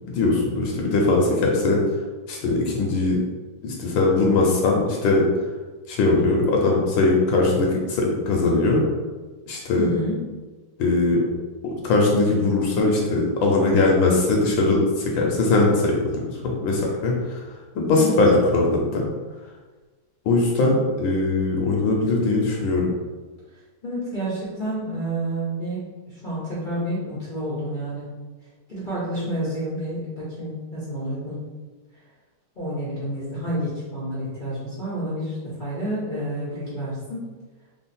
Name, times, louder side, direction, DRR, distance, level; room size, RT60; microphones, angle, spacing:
voice 1, 0.1-1.8 2.3-3.2 3.6-5.2 5.9-8.8 9.5-9.9 10.8-11.2 11.6-17.1 17.7-19.0 20.3-22.9, left 2 dB, 70° left, -1 dB, 1.3 m, -20 dB
voice 2, 9.7-10.2 18.0-18.2 23.8-25.8 26.2-28.1 28.7-31.4 32.6-37.2, right 1 dB, 50° left, -8 dB, 0.6 m, -29 dB
3.6 x 2.1 x 4.1 m, 1.3 s
omnidirectional pair, 2.3 m